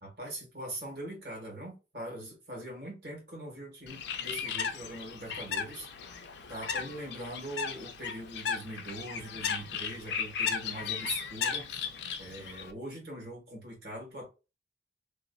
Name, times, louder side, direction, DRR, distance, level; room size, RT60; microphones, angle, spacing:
voice 1, 0.0-5.9 6.5-11.8 12.2-14.3, right 1 dB, 60° right, 1.5 m, -42 dB
Bird, 3.9-12.7, left 7 dB, 70° left, 0.4 m, -36 dB
2.8 x 2.3 x 2.6 m
head